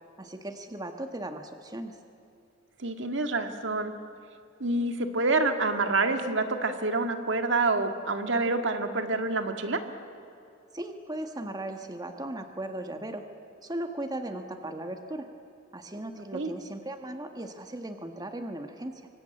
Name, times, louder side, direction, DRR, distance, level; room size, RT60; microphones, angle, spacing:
voice 1, 0.2-2.0 10.7-13.2 13.6-15.3 15.7-19.1, right 1 dB, 20° right, 6 dB, 1.5 m, -37 dB
voice 2, 2.8-3.9 4.6-9.8 16.3-16.5, right 3 dB, 65° right, 6 dB, 2.0 m, -27 dB
26.0 x 24.5 x 9.0 m, 2.8 s
head